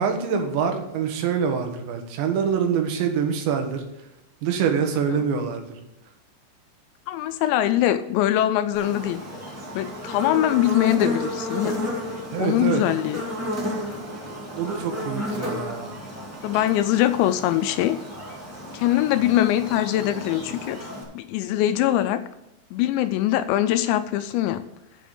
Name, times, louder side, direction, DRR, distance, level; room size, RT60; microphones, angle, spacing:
voice 1, 0.0-3.8 4.4-5.6 12.3-12.8 14.6-15.9, right 7 dB, 75° right, 4 dB, 3.5 m, -25 dB
voice 2, 7.1-9.2 9.7-11.8 12.4-13.2 15.4-15.6 16.4-18.0 18.7-20.9 21.1-22.2 22.7-24.6, left 13 dB, 85° left, 11 dB, 2.7 m, -22 dB
Buzz, 8.7-21.0, left 1 dB, 5° right, 1.1 m, -32 dB
7.8 x 7.1 x 7.1 m, 0.96 s
omnidirectional pair, 5.4 m